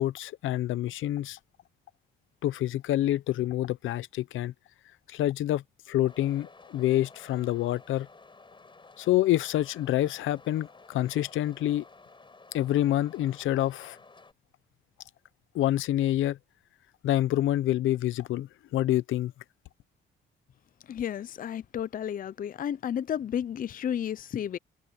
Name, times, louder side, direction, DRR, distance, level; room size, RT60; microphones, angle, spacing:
voice 1, 0.0-1.4 2.4-4.5 5.1-8.1 9.0-11.8 12.5-14.0 15.5-16.4 17.0-19.3, left 14 dB, 80° left, 0.8 m, -27 dB
sound 1, 6.1-14.3, left 3 dB, 25° left, 6.3 m, -53 dB
voice 2, 20.9-24.6, left 9 dB, 45° left, 0.5 m, -32 dB
cardioid pair, 90°, 20 cm